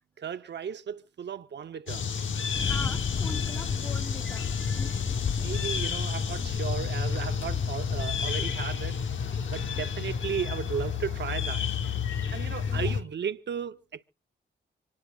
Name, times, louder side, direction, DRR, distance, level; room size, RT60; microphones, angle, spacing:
voice 1, 0.2-2.1 5.3-9.0 9.5-11.7 12.3-14.0, right 7 dB, 65° right, 0.7 m, -35 dB
sound 1, 1.9-13.0, left 6 dB, 80° left, 1.0 m, -30 dB
Thunder, 2.5-10.8, left 6 dB, 35° left, 0.7 m, -36 dB
voice 2, 2.7-4.5 9.3-9.8 12.1-13.0, left 1 dB, 10° left, 1.1 m, -43 dB
27.5 x 9.4 x 2.3 m
cardioid pair, 55°, 20 cm